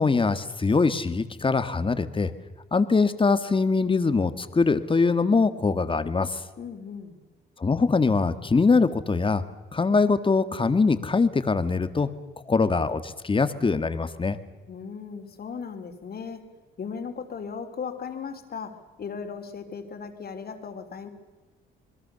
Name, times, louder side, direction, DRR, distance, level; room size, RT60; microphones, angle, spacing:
voice 1, 0.0-2.3 2.7-6.4 7.6-9.4 9.7-12.1 12.5-14.4, left 4 dB, 25° left, 11 dB, 1.8 m, -23 dB
voice 2, 6.6-7.2 14.7-16.5 16.8-21.1, left 6 dB, 50° left, 6 dB, 3.5 m, -37 dB
27.0 x 21.5 x 6.9 m, 1.2 s
cardioid pair, 90°, 20 cm